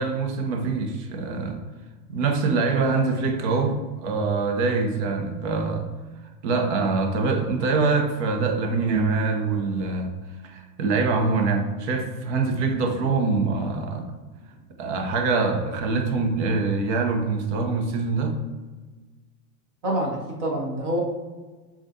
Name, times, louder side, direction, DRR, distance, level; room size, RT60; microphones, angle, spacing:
voice 1, 0.0-1.6 2.1-5.9 6.4-10.1 10.4-14.1 14.8-18.4, right 4 dB, 45° right, 4 dB, 0.9 m, -24 dB
voice 2, 19.8-21.0, equal, 20° right, -1 dB, 0.3 m, -26 dB
7.0 x 2.5 x 2.7 m, 1.3 s
hypercardioid pair, 135°, 48 cm